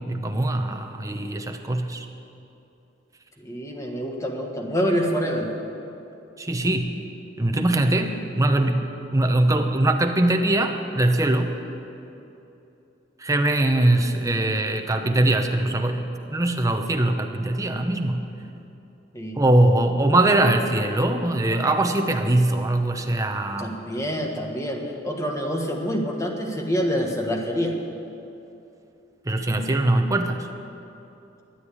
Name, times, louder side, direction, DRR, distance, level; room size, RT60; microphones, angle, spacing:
voice 1, 0.1-2.1 6.4-6.9 7.4-11.6 13.2-18.3 19.4-23.8 29.3-30.5, right 1 dB, 20° right, 5 dB, 0.9 m, -22 dB
voice 2, 3.4-5.5 19.1-19.4 23.6-27.8, equal, 15° left, 2 dB, 1.4 m, -26 dB
13.0 x 9.2 x 8.5 m, 2.8 s
head